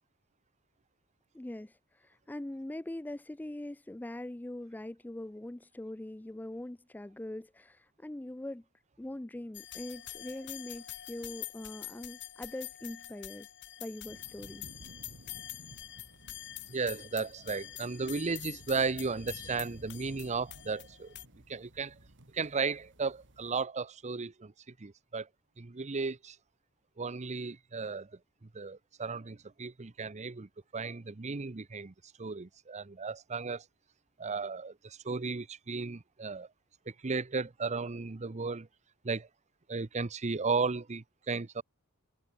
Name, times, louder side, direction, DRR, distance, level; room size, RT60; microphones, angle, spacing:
voice 1, 1.3-8.6 9.0-13.5 13.8-14.6, left 1 dB, 10° left, 0.4 m, -42 dB
sound 1, 9.5-21.2, left 14 dB, 55° left, 1.5 m, -46 dB
sound 2, 14.0-23.6, right 1 dB, 60° right, 3.4 m, -55 dB
voice 2, 16.7-21.1 21.5-21.9 22.3-24.5 24.8-25.3 25.6-26.4 27.0-28.1 28.5-31.9 32.2-33.6 34.2-36.5 36.9-38.7 39.0-39.3 39.7-41.6, right 4 dB, 30° right, 0.7 m, -35 dB
head